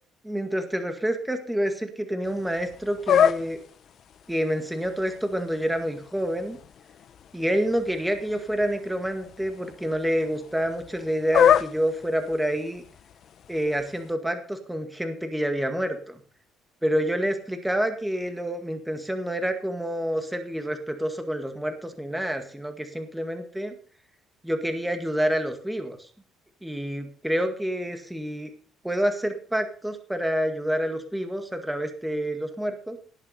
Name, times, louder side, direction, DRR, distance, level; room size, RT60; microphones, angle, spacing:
voice 1, 0.2-3.6 4.3-6.6 7.3-12.8 13.5-16.2 16.8-23.7 24.4-26.0 26.6-28.5 28.8-33.0, equal, 5° right, 6 dB, 1.9 m, -28 dB
sound 1, 2.2-14.1, left 8 dB, 50° left, 0.8 m, -29 dB
18.0 x 7.4 x 5.5 m, 0.42 s
cardioid pair, 130°, 0 cm